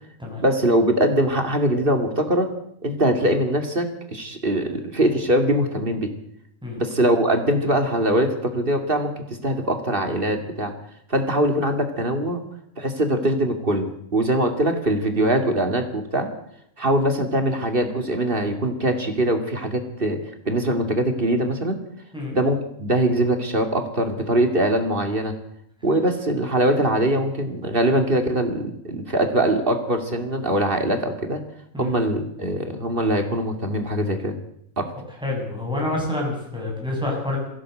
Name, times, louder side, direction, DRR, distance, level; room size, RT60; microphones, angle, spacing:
voice 1, 0.4-2.5 2.8-6.1 6.8-10.7 11.1-12.4 12.8-16.3 16.8-21.8 22.3-25.3 25.8-31.4 31.8-34.3 34.8-34.9, right 1 dB, 40° right, 6 dB, 2.8 m, -22 dB
voice 2, 35.2-37.5, left 2 dB, 5° right, -2 dB, 7.3 m, -27 dB
21.5 x 16.0 x 7.9 m, 0.75 s
omnidirectional pair, 1.4 m